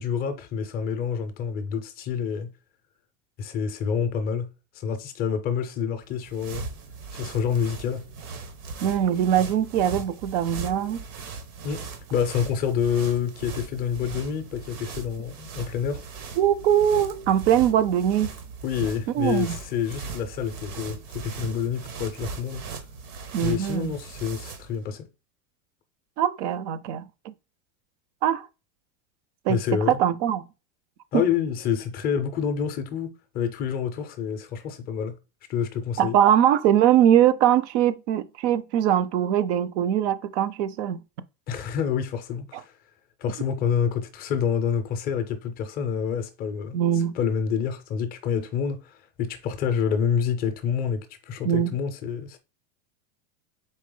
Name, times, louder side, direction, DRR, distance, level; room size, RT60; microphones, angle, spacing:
voice 1, 0.0-2.5 3.4-4.5 4.7-6.7 7.1-8.0 11.6-16.0 18.6-22.6 23.4-25.1 29.5-30.0 31.1-35.2 35.5-36.2 41.5-42.7 43.2-46.8 47.1-52.4, left 7 dB, 25° left, 0.4 m, -28 dB
sound 1, 6.0-24.8, right 4 dB, 90° right, 1.2 m, -39 dB
voice 2, 8.8-11.0 16.4-18.3 19.1-19.6 23.3-23.9 26.2-27.3 28.2-28.5 29.5-29.6 29.9-30.4 36.0-41.0 46.7-47.1 51.4-51.7, right 10 dB, 55° right, 0.5 m, -22 dB
4.2 x 3.2 x 3.7 m
supercardioid pair, 160°, 43 cm